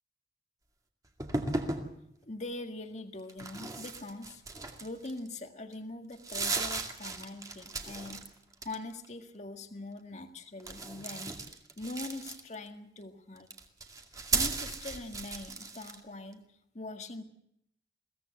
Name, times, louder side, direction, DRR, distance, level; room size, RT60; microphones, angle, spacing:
sound 1, 1.2-1.9 3.3-5.3 5.7-5.8 6.1-8.3 8.5-9.0 10.6-12.7 13.4-16.0, right 3 dB, 20° right, 2.2 m, -36 dB
voice 1, 2.2-4.4 4.8-8.3 8.6-11.4 11.8-13.6 14.3-16.5 16.7-17.2, left 2 dB, 40° left, 6 dB, 1.8 m, -42 dB
22.5 x 17.0 x 7.8 m, 0.76 s
head